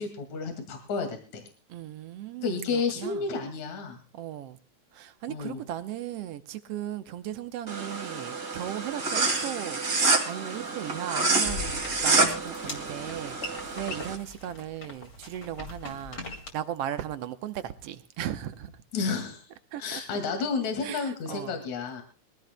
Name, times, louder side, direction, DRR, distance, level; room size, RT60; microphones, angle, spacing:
voice 1, 0.0-1.4 2.4-4.0 5.3-5.6 18.9-19.4 19.8-22.0, left 4 dB, 75° left, 3.5 m, -31 dB
voice 2, 1.7-3.3 4.1-4.6 4.9-9.8 10.3-16.2 16.5-18.7 19.7-20.0 20.8-21.6, right 11 dB, 70° right, 1.7 m, -37 dB
sound 1, 7.7-14.1, right 3 dB, 30° right, 2.6 m, -28 dB
sound 2, 11.4-16.5, left 3 dB, 30° left, 2.6 m, -41 dB
22.5 x 16.0 x 2.2 m
omnidirectional pair, 3.3 m